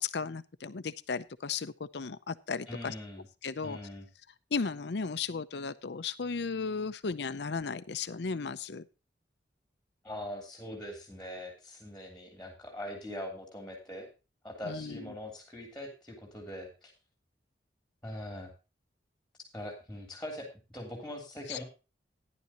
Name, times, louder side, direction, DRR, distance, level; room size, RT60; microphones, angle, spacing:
voice 1, 0.0-2.9 3.4-3.8 4.5-8.8 14.7-15.1 21.5-21.6, left 5 dB, 65° left, 12 dB, 0.6 m, -35 dB
voice 2, 2.7-3.3 3.6-4.1 10.0-14.1 14.4-16.9 18.0-18.5 19.5-21.6, left 1 dB, 5° left, 1 dB, 3.3 m, -42 dB
14.0 x 10.5 x 2.9 m, 0.29 s
head